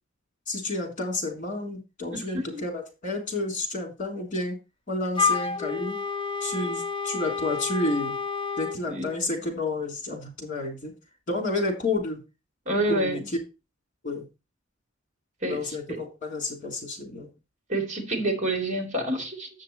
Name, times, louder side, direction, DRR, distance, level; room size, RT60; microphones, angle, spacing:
voice 1, 0.5-4.6 4.9-6.0 6.4-8.1 8.6-10.9 11.3-12.2 12.9-13.4 14.0-14.2 15.5-17.3, left 2 dB, 40° left, 3.1 m, -30 dB
Wind instrument woodwind instrument, 5.2-8.8, left 5 dB, 25° left, 0.6 m, -29 dB
voice 2, 12.7-13.2 15.4-15.6 15.9-16.0 17.7-19.5, right 1 dB, 40° right, 2.6 m, -27 dB
7.8 x 6.6 x 4.1 m
head